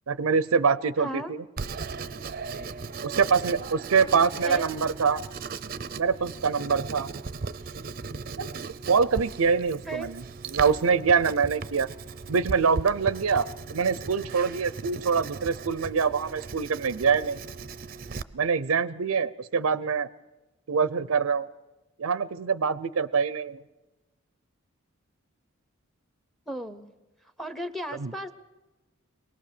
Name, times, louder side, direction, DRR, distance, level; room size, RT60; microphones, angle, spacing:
voice 1, 0.1-1.4 3.0-5.2 6.0-7.1 8.4-10.2 10.5-11.9 12.3-17.4 18.3-20.1 20.7-21.5 22.0-23.6 28.0-28.1, right 5 dB, 85° right, 17 dB, 0.6 m, -25 dB
voice 2, 1.0-1.3 4.4-4.7 9.9-10.1 26.5-26.9 27.4-28.3, right 1 dB, ahead, 12 dB, 0.9 m, -35 dB
Writing, 1.6-18.2, right 4 dB, 45° right, 0.6 m, -37 dB
23.5 x 18.5 x 6.8 m, 1.1 s
head